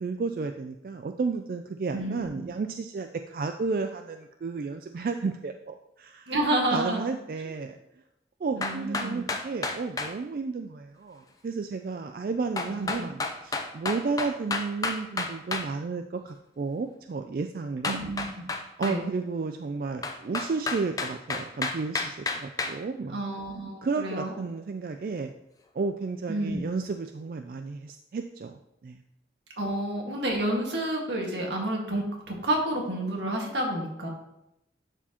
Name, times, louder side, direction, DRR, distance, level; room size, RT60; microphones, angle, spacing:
voice 1, 0.0-6.3 6.7-7.8 8.4-17.9 18.8-23.2 23.8-25.3 25.7-29.0, right 4 dB, 50° right, 6 dB, 0.3 m, -32 dB
voice 2, 1.9-2.4 6.3-7.1 8.6-9.2 12.6-12.9 17.8-18.3 18.8-19.1 23.1-24.3 26.3-26.6 29.6-34.1, right 1 dB, 85° right, 0 dB, 1.7 m, -29 dB
sound 1, 8.6-10.1 12.6-15.7 17.8-19.0 20.0-22.8, left 3 dB, 20° left, 0.5 m, -30 dB
11.0 x 4.5 x 2.9 m, 0.84 s
head